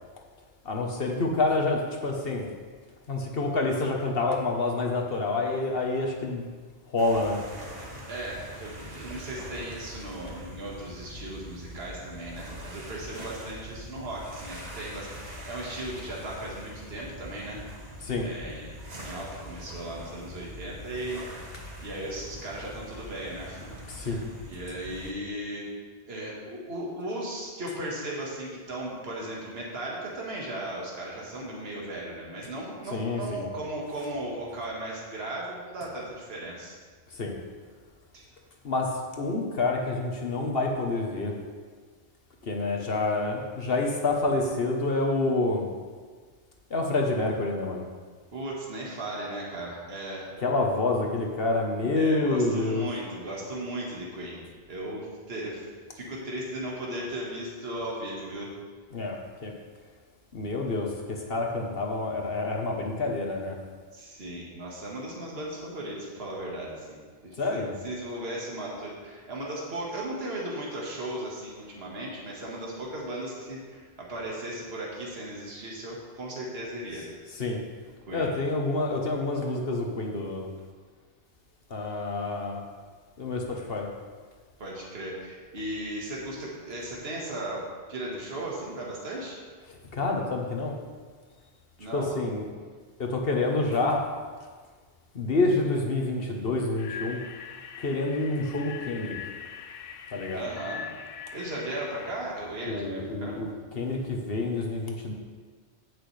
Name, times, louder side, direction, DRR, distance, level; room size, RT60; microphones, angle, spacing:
voice 1, 0.6-2.4 3.1-6.5 6.9-7.4 18.0-18.3 23.9-24.3 32.8-33.4 34.0-34.1 37.2-37.3 38.6-38.9 39.2-41.3 42.4-45.6 46.7-47.8 50.4-52.9 58.9-59.5 60.3-63.6 67.4-67.7 76.9-77.0 77.3-77.6 78.1-80.5 81.7-82.6 83.2-83.9 89.7-90.7 91.9-92.5 93.0-94.0 95.1-97.2 97.8-99.2 100.1-100.5 102.6-105.1, left 2 dB, 55° left, 1 dB, 1.3 m, -28 dB
sound 1, 7.0-25.1, equal, 35° right, 1.5 m, -43 dB
voice 2, 8.1-17.6 18.2-21.2 21.8-25.6 26.1-36.8 38.1-38.3 48.3-50.3 51.9-54.4 54.7-55.7 55.9-58.5 63.9-77.1 78.1-78.3 84.6-87.6 87.9-89.4 91.8-92.1 100.3-100.8 101.3-103.4, right 1 dB, 60° right, -3 dB, 1.9 m, -36 dB
sound 2, 96.8-102.1, left 7 dB, 85° left, 0.9 m, -41 dB
16.5 x 6.2 x 3.3 m, 1.5 s
omnidirectional pair, 1.2 m